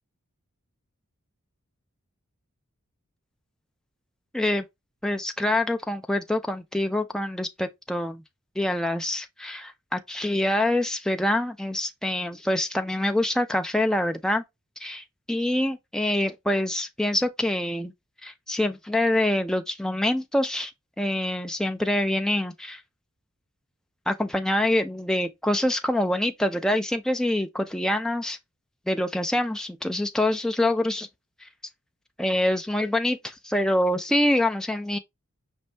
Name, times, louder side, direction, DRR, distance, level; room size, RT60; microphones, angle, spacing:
voice 1, 4.3-4.7 5.0-8.2 8.6-14.4 14.8-17.9 18.2-20.7 21.0-22.8 24.1-28.4 28.9-31.1 31.4-31.5 32.2-35.0, left 1 dB, 5° left, 0.3 m, -25 dB
5.3 x 2.7 x 3.2 m
head